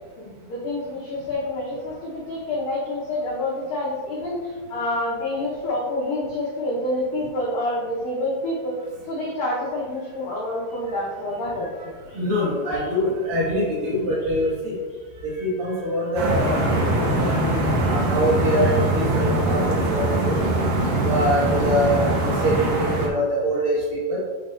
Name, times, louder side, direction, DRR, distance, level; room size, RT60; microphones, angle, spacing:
voice 1, 0.2-8.8 9.1-11.9 12.6-12.8, left 1 dB, 90° left, -6 dB, 1.9 m, -28 dB
voice 2, 12.1-14.8 15.2-20.4 20.9-24.2, equal, 55° right, -8 dB, 2.7 m, -24 dB
sound 1, 16.2-23.1, right 1 dB, 75° right, 2.0 m, -22 dB
8.9 x 6.2 x 2.6 m, 1.5 s
omnidirectional pair, 5.8 m